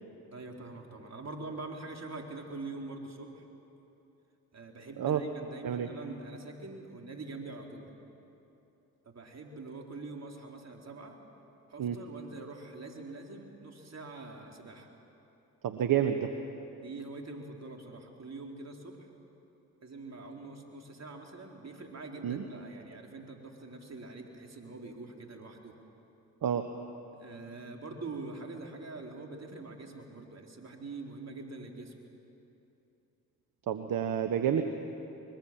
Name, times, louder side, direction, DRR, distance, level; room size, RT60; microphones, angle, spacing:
voice 1, 0.3-3.5 4.5-7.9 9.0-11.2 11.7-14.9 16.8-19.1 19.8-25.7 27.1-31.9, right 3 dB, 40° right, 2 dB, 3.9 m, -44 dB
voice 2, 15.6-16.3 22.2-22.4 26.4-26.7 33.7-34.6, right 9 dB, 60° right, 7 dB, 1.3 m, -29 dB
24.5 x 22.0 x 7.5 m, 2.9 s
hypercardioid pair, 45°, 38 cm